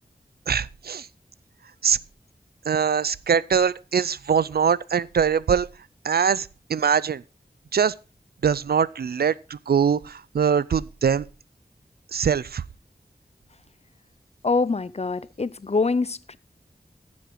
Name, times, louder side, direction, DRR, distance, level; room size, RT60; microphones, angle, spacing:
voice 1, 0.5-1.1 1.8-2.0 2.7-5.7 6.0-7.2 7.7-7.9 8.4-11.2 12.1-12.6, right 7 dB, 80° right, 0.4 m, -22 dB
voice 2, 14.4-16.4, left 4 dB, 40° left, 0.6 m, -24 dB
15.0 x 7.2 x 3.8 m
wide cardioid pair, 60°, 16 cm